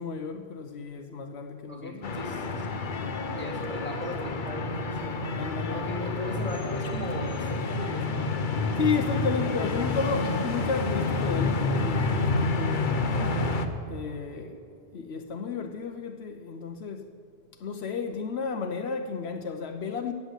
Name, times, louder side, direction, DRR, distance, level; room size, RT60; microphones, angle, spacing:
voice 1, 0.0-2.2 5.3-5.9 8.8-12.9 13.9-14.6 14.9-17.1 17.6-20.1, left 5 dB, 75° left, 1.1 m, -32 dB
voice 2, 1.7-2.9 3.3-5.2 5.7-8.3 14.0-14.8, left 1 dB, 10° left, 2.6 m, -39 dB
sound 1, 2.0-13.7, left 3 dB, 50° left, 1.0 m, -29 dB
14.0 x 8.5 x 8.2 m
omnidirectional pair, 1.1 m